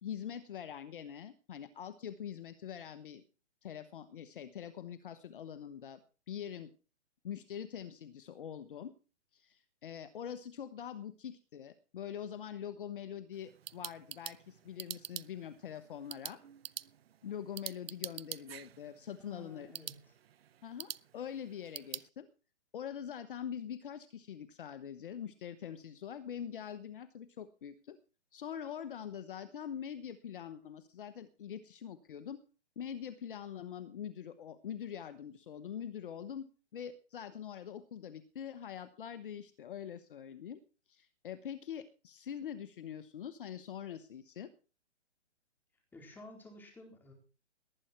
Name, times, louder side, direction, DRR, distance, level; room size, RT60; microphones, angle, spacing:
voice 1, 0.0-3.2 3.6-6.7 7.2-8.9 9.3-16.4 17.2-19.7 20.6-22.3 22.7-28.0 28.3-32.4 32.8-40.6 40.9-44.5, left 9 dB, 45° left, 13 dB, 1.2 m, -44 dB
sound 1, 13.3-22.1, right 10 dB, 55° right, 0.7 m, -47 dB
voice 2, 19.3-20.1 45.9-47.1, left 1 dB, 5° left, 2 dB, 4.3 m, -53 dB
18.5 x 10.0 x 4.5 m, 0.35 s
hypercardioid pair, 155°, 35 cm